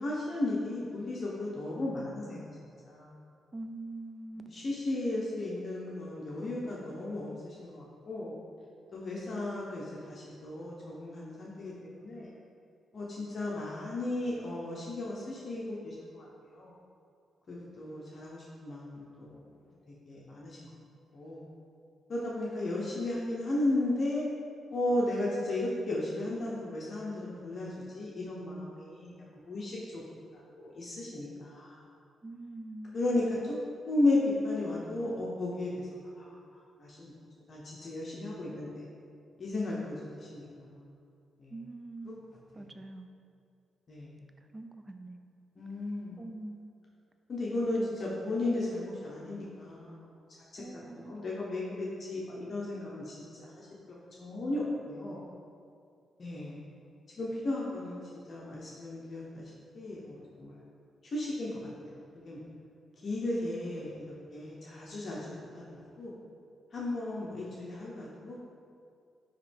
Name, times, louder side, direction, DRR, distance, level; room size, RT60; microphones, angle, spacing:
voice 1, 0.0-2.5 2.8-3.1 4.5-8.4 8.9-12.3 12.9-16.7 17.5-19.5 20.1-20.6 21.1-21.5 22.1-24.2 24.7-29.1 29.5-30.0 30.3-31.8 32.9-33.6 33.9-35.9 36.2-36.4 36.8-37.1 37.5-38.8 39.4-40.9 41.4-41.5 42.0-42.1 42.5-42.6 43.9-44.1 45.6-46.2 47.3-50.0 50.5-50.6 50.9-53.7 54.2-55.2 56.2-56.6 57.2-58.0 58.3-60.6 61.1-61.9 62.2-62.4 63.0-64.0 64.3-66.2 66.7-68.5, left 2 dB, 50° left, -5 dB, 0.9 m, -35 dB
voice 2, 3.5-4.7 32.2-33.0 41.5-42.2 42.5-43.1 44.5-45.2 46.2-46.7 47.8-48.2 50.6-51.1, right 2 dB, 25° right, 7 dB, 0.4 m, -44 dB
9.1 x 3.1 x 3.4 m, 2.4 s
cardioid pair, 85°, 0 cm